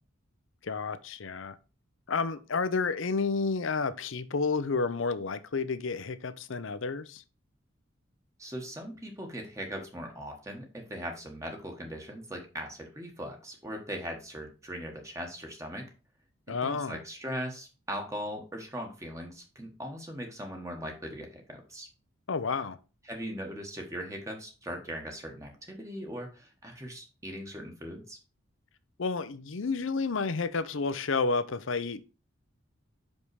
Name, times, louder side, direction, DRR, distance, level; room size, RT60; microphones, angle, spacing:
voice 1, 0.6-1.6 2.1-7.2 16.5-17.0 22.3-22.8 29.0-32.1, left 4 dB, 70° left, 0.6 m, -30 dB
voice 2, 8.4-15.9 16.5-21.9 23.0-28.2, equal, 15° right, 1.2 m, -39 dB
5.6 x 5.3 x 4.7 m
head